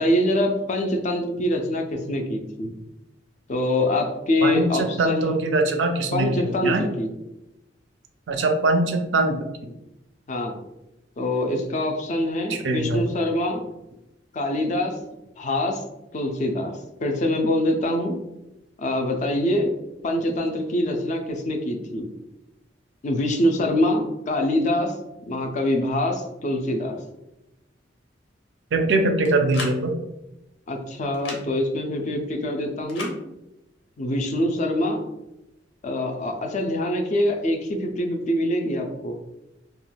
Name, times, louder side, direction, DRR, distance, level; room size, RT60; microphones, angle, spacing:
voice 1, 0.0-2.7 3.5-5.4 6.1-7.1 10.3-10.5 11.2-13.6 14.3-15.0 15.4-15.8 16.1-18.2 18.8-19.7 20.0-22.1 23.0-25.0 25.3-27.0 30.7-33.2 34.0-35.0 35.8-39.2, left 1 dB, 40° left, 3 dB, 0.4 m, -24 dB
voice 2, 4.4-6.8 8.3-9.5 12.5-13.0 28.7-29.9, right 2 dB, 70° right, 5 dB, 0.4 m, -22 dB
sound 1, 29.2-29.8 31.1-31.4 32.9-33.2, left 3 dB, 85° left, 0.7 m, -34 dB
2.4 x 2.2 x 3.2 m, 0.93 s
head